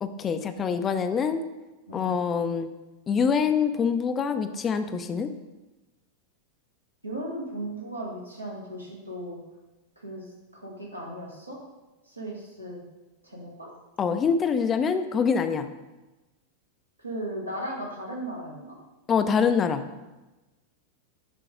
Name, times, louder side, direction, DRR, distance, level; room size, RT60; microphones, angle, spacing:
voice 1, 0.0-1.4 1.9-2.7 3.1-5.3 14.0-15.7 19.1-19.8, left 6 dB, 25° left, 9 dB, 0.4 m, -25 dB
voice 2, 7.0-9.4 10.0-10.2 10.5-11.6 12.1-12.8 13.2-13.7 17.0-18.8, right 1 dB, 85° right, -3 dB, 1.6 m, -36 dB
7.6 x 3.8 x 5.0 m, 1.1 s
figure-of-eight pair, 90°, 0 cm